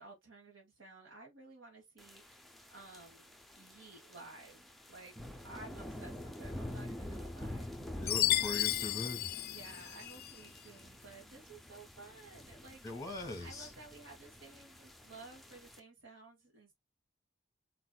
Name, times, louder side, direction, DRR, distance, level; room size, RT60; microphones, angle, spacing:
voice 1, 0.0-5.2 5.4-7.6 9.4-16.7, right 3 dB, 85° right, 1.7 m, -54 dB
sound 1, 2.0-15.8, left 1 dB, ahead, 0.6 m, -48 dB
voice 2, 8.0-9.3 12.8-13.7, left 2 dB, 15° left, 1.8 m, -41 dB
Chime, 8.1-10.4, left 15 dB, 50° left, 0.3 m, -33 dB
4.5 x 4.1 x 2.3 m
head